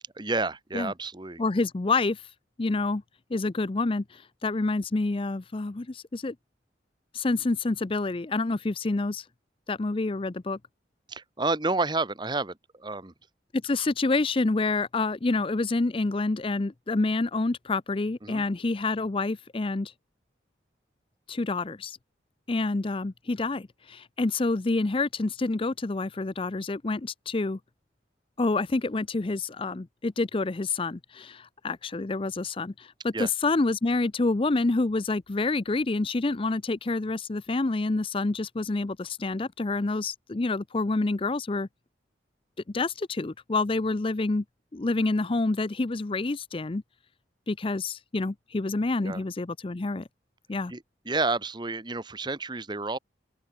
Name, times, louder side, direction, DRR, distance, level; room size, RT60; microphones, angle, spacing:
voice 1, 0.1-1.4 11.1-13.1 18.2-18.4 33.1-33.3 49.0-49.2 50.7-53.0, right 3 dB, 25° right, 1.4 m, -30 dB
voice 2, 1.4-2.3 2.6-3.0 3.3-6.3 7.1-9.2 9.7-10.6 13.5-19.9 21.3-22.0 22.5-27.6 28.4-41.7 42.7-44.4 44.7-46.8 47.5-50.1 50.5-50.7, left 3 dB, 30° left, 0.5 m, -28 dB
open air
head